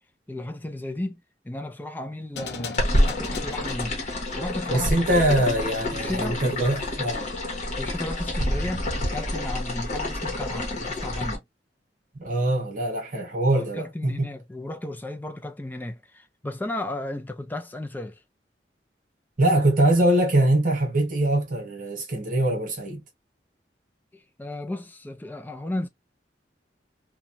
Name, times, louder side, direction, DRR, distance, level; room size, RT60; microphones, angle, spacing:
voice 1, 0.3-5.5 5.9-6.4 7.1-7.3 7.8-11.4 13.5-18.2 24.1-25.9, left 1 dB, 10° left, 0.4 m, -34 dB
sound 1, 2.3-8.1, left 4 dB, 65° left, 0.5 m, -42 dB
sound 2, 2.8-11.4, left 1 dB, 40° left, 1.0 m, -28 dB
voice 2, 4.7-7.3 12.2-14.3 19.4-23.0, right 1 dB, 50° right, 1.0 m, -23 dB
2.9 x 2.2 x 2.5 m
head